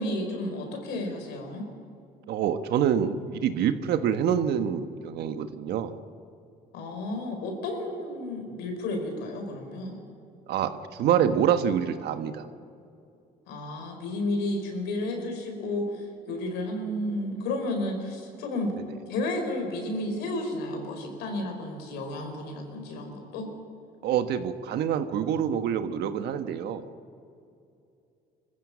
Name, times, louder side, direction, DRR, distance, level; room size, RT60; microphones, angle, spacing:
voice 1, 0.0-1.6 6.7-10.0 13.5-18.8 19.1-23.5, left 1 dB, 90° left, 3 dB, 4.9 m, -32 dB
voice 2, 2.3-5.9 10.5-12.5 24.0-26.9, right 9 dB, 75° right, 9 dB, 1.4 m, -26 dB
25.5 x 15.0 x 8.6 m, 2.6 s
cardioid pair, 110°, 17 cm